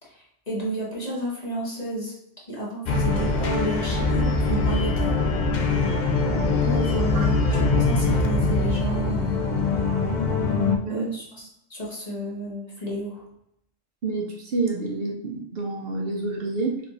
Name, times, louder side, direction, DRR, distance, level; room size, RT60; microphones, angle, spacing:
voice 1, 0.0-2.1 2.5-5.1 6.6-9.4 10.9-13.2, right 1 dB, 35° left, -5 dB, 1.3 m, -31 dB
sound 1, 2.9-10.8, left 3 dB, 55° left, 0.5 m, -23 dB
voice 2, 14.0-16.8, right 3 dB, 60° right, 0 dB, 0.9 m, -28 dB
3.5 x 3.1 x 4.0 m, 0.79 s
omnidirectional pair, 1.2 m